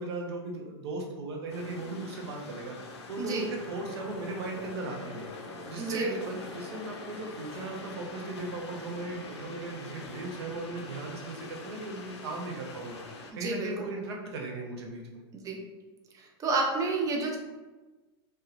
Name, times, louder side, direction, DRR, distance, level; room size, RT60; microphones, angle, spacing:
voice 1, 0.0-2.7 3.1-5.3 5.7-6.1 6.5-13.0 13.3-15.2, right 2 dB, 75° right, 0 dB, 0.6 m, -37 dB
sound 1, 1.5-13.3, left 3 dB, 90° left, 0.4 m, -44 dB
voice 2, 3.2-3.5 5.8-6.4 13.3-13.9 15.3-15.6 16.1-17.4, right 3 dB, 25° right, 1 dB, 0.5 m, -31 dB
2.7 x 2.2 x 2.4 m, 1.2 s
hypercardioid pair, 110°, 14 cm